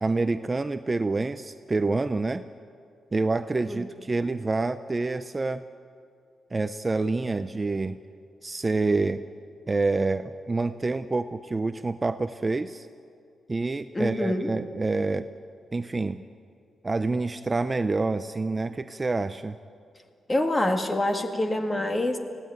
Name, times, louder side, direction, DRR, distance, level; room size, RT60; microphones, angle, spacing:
voice 1, 0.0-2.4 3.1-5.6 6.5-8.0 8.4-9.2 9.7-12.9 13.5-15.3 15.7-16.2 16.8-19.6, right 3 dB, 25° right, 11 dB, 0.5 m, -27 dB
voice 2, 13.9-14.5 20.3-22.2, left 1 dB, 20° left, 5 dB, 2.0 m, -26 dB
19.5 x 16.0 x 9.0 m, 2.4 s
cardioid pair, 110°, 0 cm